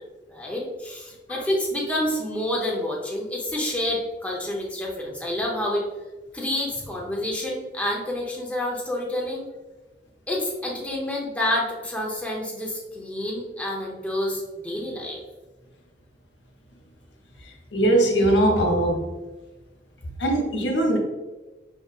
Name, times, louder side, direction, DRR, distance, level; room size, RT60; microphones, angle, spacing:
voice 1, 0.3-5.8 6.3-9.5 10.3-15.2, left 1 dB, 10° left, -3 dB, 0.6 m, -28 dB
voice 2, 17.7-19.1 20.2-21.0, right 1 dB, 85° left, 2 dB, 0.8 m, -20 dB
4.6 x 3.6 x 2.4 m, 1.2 s
head